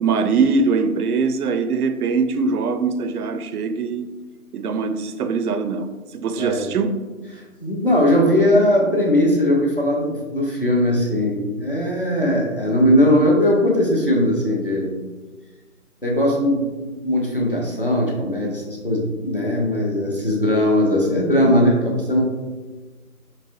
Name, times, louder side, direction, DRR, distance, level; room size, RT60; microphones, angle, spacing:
voice 1, 0.0-4.1 4.5-5.9 6.1-7.0, right 4 dB, 80° right, 9 dB, 0.5 m, -22 dB
voice 2, 7.3-14.9 16.0-22.2, left 1 dB, 40° left, -2 dB, 0.6 m, -19 dB
4.3 x 3.2 x 2.5 m, 1.3 s
figure-of-eight pair, 180°, 44 cm